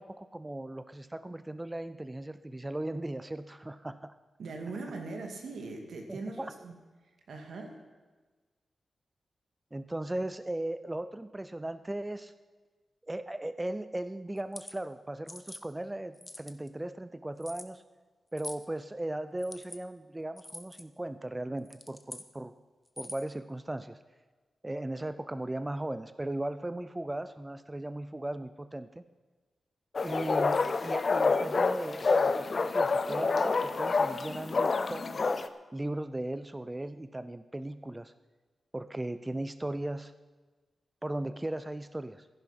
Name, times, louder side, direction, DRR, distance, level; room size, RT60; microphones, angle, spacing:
voice 1, 0.0-4.1 4.9-5.0 6.1-6.5 9.7-12.3 13.1-17.8 18.3-22.5 23.0-24.0 24.6-29.0 30.0-35.3 35.7-38.1 38.7-40.1 41.0-42.3, right 1 dB, 10° right, 13 dB, 0.3 m, -37 dB
voice 2, 4.4-6.8 7.3-7.7, right 3 dB, 75° right, 3 dB, 2.2 m, -40 dB
sound 1, 14.4-14.7 15.3-15.6 16.1-16.7 17.4-17.7 18.4-18.7 19.4-19.8 20.4-20.8 21.6-22.3 22.9-23.3, left 1 dB, 10° left, 0.8 m, -45 dB
sound 2, 29.9-35.5, left 4 dB, 40° left, 0.6 m, -28 dB
14.5 x 10.5 x 5.9 m, 1.3 s
wide cardioid pair, 175°, 0 cm